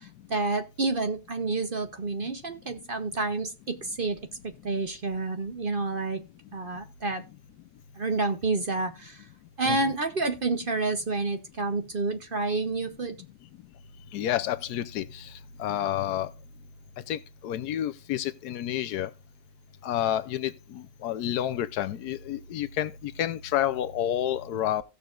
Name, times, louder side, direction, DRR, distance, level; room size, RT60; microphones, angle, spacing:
voice 1, 0.0-6.2 6.5-7.2 8.0-9.3 9.6-13.2, right 3 dB, 45° right, 0.8 m, -29 dB
voice 2, 14.1-15.3 15.6-16.3 17.1-19.1 19.8-24.8, left 11 dB, 85° left, 1.2 m, -29 dB
16.5 x 6.8 x 2.4 m
omnidirectional pair, 1.7 m